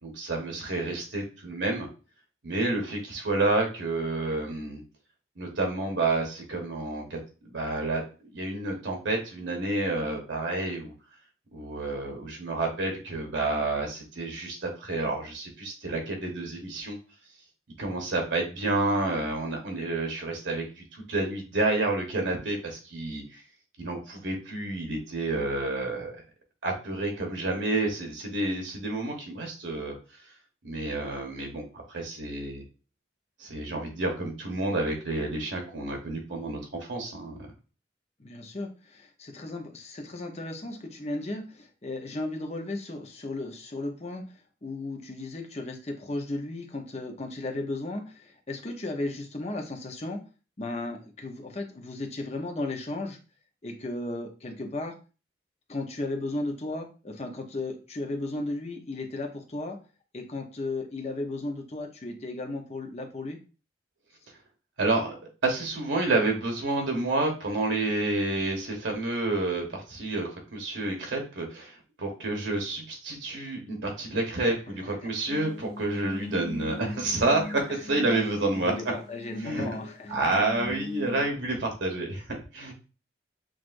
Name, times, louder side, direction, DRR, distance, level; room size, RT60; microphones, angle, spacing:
voice 1, 0.0-1.9 2.4-4.8 5.4-8.0 8.3-10.9 11.5-17.0 17.8-23.4 23.8-26.1 26.6-29.9 30.6-32.6 33.4-37.5 64.8-65.2 65.4-78.7 79.4-79.7 80.1-82.7, right 2 dB, 90° right, 2 dB, 1.1 m, -29 dB
voice 2, 38.2-50.2 50.6-53.2 53.6-54.9 55.7-59.8 60.1-63.4 78.5-80.4, left 2 dB, 35° left, 3 dB, 0.7 m, -35 dB
sound 1, 75.2-81.2, left 2 dB, 60° left, 1.1 m, -40 dB
6.2 x 2.5 x 2.5 m, 0.34 s
head